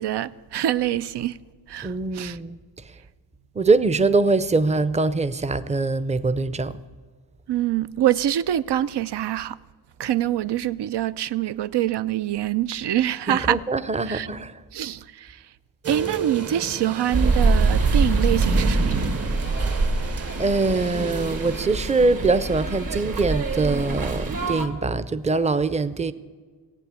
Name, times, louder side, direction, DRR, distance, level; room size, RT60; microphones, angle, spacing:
voice 1, 0.0-1.4 1.7-2.4 7.5-9.6 10.0-13.6 14.1-14.3 14.7-15.4 15.9-18.9, right 12 dB, 80° right, 0.6 m, -25 dB
voice 2, 1.8-2.6 3.6-6.7 13.3-14.5 20.4-26.1, right 3 dB, 15° right, 0.5 m, -23 dB
sound 1, 15.8-21.7, right 6 dB, 35° right, 0.9 m, -34 dB
sound 2, 17.1-24.7, right 3 dB, 60° right, 1.9 m, -24 dB
17.5 x 8.8 x 8.2 m
wide cardioid pair, 115°, 40 cm